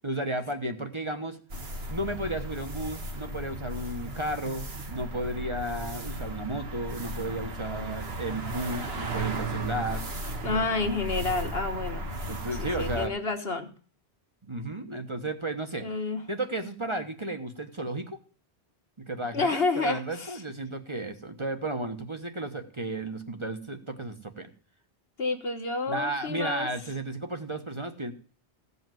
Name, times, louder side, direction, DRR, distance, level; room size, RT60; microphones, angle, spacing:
voice 1, 0.0-1.4 1.9-10.0 10.5-10.7 12.3-13.1 14.5-15.9 16.3-18.2 19.0-24.5 25.9-28.1, right 1 dB, 25° right, 6 dB, 1.2 m, -33 dB
sound 1, 1.5-13.1, right 1 dB, 65° right, 1.8 m, -35 dB
voice 2, 10.4-12.1 12.6-13.7 15.8-16.2 19.3-20.4 25.2-26.7, left 3 dB, 65° left, 6 dB, 1.6 m, -29 dB
16.0 x 5.6 x 9.1 m, 0.41 s
omnidirectional pair, 1.1 m